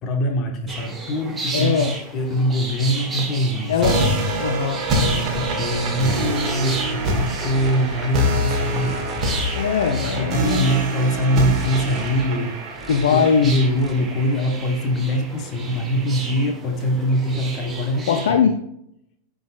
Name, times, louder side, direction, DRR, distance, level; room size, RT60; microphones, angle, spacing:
voice 1, 0.0-1.8 2.1-3.7 5.0-9.2 10.0-18.4, equal, 35° left, 4 dB, 1.2 m, -23 dB
sound 1, 0.7-18.3, right 3 dB, 15° right, 1.2 m, -34 dB
voice 2, 1.5-1.9 3.7-4.8 9.5-10.4 12.9-13.7 18.1-18.5, left 6 dB, 60° left, 6 dB, 0.5 m, -20 dB
sound 2, 3.8-14.8, equal, 35° right, 1.4 m, -25 dB
sound 3, 7.4-7.8 8.1-9.4 9.7-10.6 11.1-12.1 12.7-13.1 13.4-13.9, left 1 dB, 5° left, 0.8 m, -42 dB
11.0 x 3.8 x 2.5 m, 0.74 s
figure-of-eight pair, 90°, 0 cm